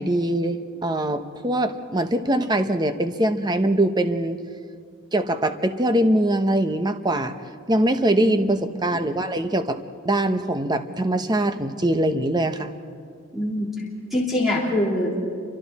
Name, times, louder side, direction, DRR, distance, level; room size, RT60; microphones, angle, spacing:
voice 1, 0.0-4.4 5.1-7.3 7.7-9.8 10.0-12.7, right 1 dB, 20° right, 8 dB, 0.9 m, -22 dB
voice 2, 8.2-8.7 13.3-13.7 14.1-15.3, left 1 dB, ahead, -4 dB, 3.2 m, -24 dB
29.0 x 25.0 x 4.2 m, 2.2 s
head